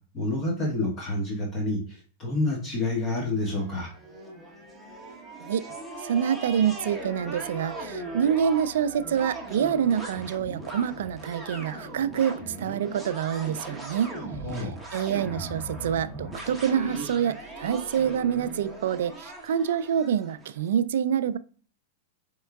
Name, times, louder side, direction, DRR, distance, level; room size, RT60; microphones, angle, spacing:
voice 1, 0.1-3.9 14.4-14.7, left 2 dB, 35° left, -2 dB, 1.5 m, -28 dB
sound 1, 3.5-20.6, right 2 dB, ahead, 1.1 m, -39 dB
voice 2, 6.0-14.1 14.5-21.4, right 8 dB, 75° right, 14 dB, 0.3 m, -26 dB
5.2 x 3.6 x 2.3 m, 0.42 s
hypercardioid pair, 115°, 0 cm